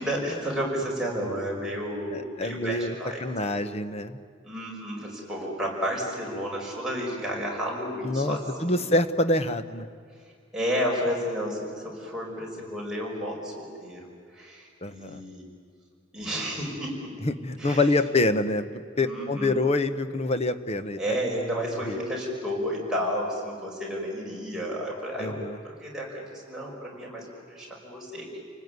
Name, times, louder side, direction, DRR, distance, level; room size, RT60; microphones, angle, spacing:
voice 1, 0.0-3.2 3.5-3.7 4.4-8.9 10.5-15.4 16.1-17.2 17.6-17.9 19.0-19.6 21.0-25.4 25.6-28.4, equal, 5° right, -4 dB, 5.9 m, -32 dB
voice 2, 2.1-2.9 3.2-4.2 8.0-9.9 14.8-15.2 17.2-21.2 21.9-22.0 25.2-25.6, left 2 dB, 35° left, 10 dB, 1.1 m, -26 dB
29.5 x 19.5 x 9.6 m, 2.2 s
head